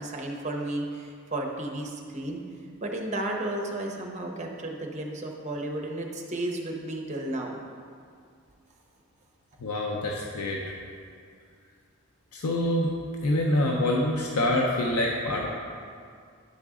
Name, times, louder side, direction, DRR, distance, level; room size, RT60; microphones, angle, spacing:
voice 1, 0.0-2.4 2.8-7.6, right 1 dB, 30° right, 1 dB, 0.7 m, -33 dB
voice 2, 9.6-10.6 12.3-12.9 13.2-15.5, left 1 dB, 90° left, -1 dB, 0.6 m, -26 dB
10.5 x 4.0 x 3.6 m, 2.2 s
head